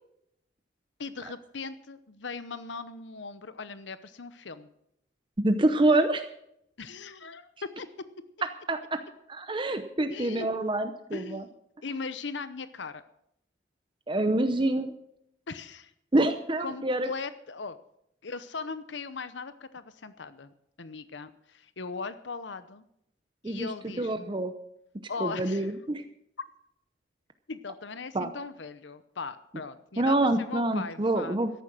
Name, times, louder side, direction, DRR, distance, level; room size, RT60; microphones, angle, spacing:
voice 1, 1.0-4.7 6.8-7.9 10.1-10.5 11.1-11.6 11.8-13.0 15.5-15.9 16.6-17.8 18.2-22.8 23.4-24.3 25.1-25.7 27.5-31.4, left 4 dB, 70° left, 13 dB, 0.8 m, -39 dB
voice 2, 5.4-6.3 8.7-9.0 9.3-11.4 14.1-14.9 16.1-17.1 23.4-23.7 24.0-24.5 25.2-26.0 28.1-28.3 30.0-31.5, right 2 dB, 25° right, 8 dB, 0.7 m, -26 dB
13.5 x 11.0 x 6.1 m, 0.76 s
head